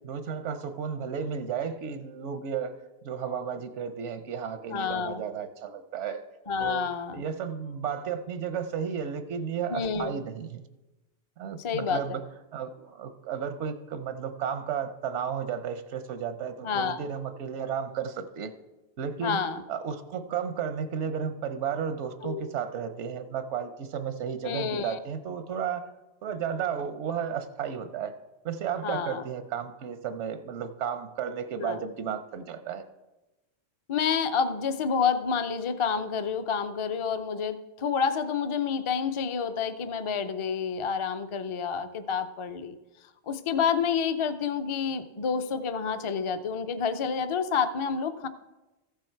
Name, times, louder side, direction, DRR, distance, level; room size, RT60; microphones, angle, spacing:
voice 1, 0.0-6.2 6.6-6.8 7.1-10.6 11.4-12.2 12.5-18.5 19.0-25.9 26.2-28.2 28.4-32.8, right 7 dB, 90° right, 9 dB, 1.0 m, -33 dB
voice 2, 4.7-5.2 6.5-7.2 9.7-10.2 11.6-12.2 16.6-17.0 19.2-19.6 22.2-22.4 24.4-25.0 28.8-29.2 31.6-31.8 33.9-42.8 43.3-48.3, left 6 dB, 40° left, 11 dB, 0.5 m, -29 dB
14.5 x 7.1 x 4.5 m, 1.0 s
omnidirectional pair, 1.2 m